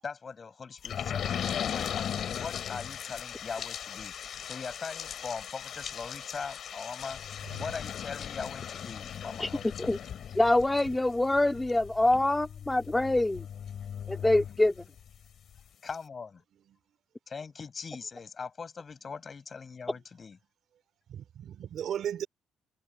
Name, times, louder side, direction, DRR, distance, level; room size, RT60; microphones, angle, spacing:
voice 1, 0.0-4.1 4.4-7.2 7.6-9.7 15.8-16.4 17.3-20.4, left 5 dB, 40° left, 7.8 m, -41 dB
sound 1, 0.8-15.1 15.6-15.7 15.9-16.0, left 9 dB, 65° left, 2.5 m, -38 dB
voice 2, 10.4-13.4 14.1-14.7, left 2 dB, 10° left, 2.3 m, -25 dB
voice 3, 21.1-22.3, right 9 dB, 70° right, 3.7 m, -36 dB
cardioid pair, 90°, 0 cm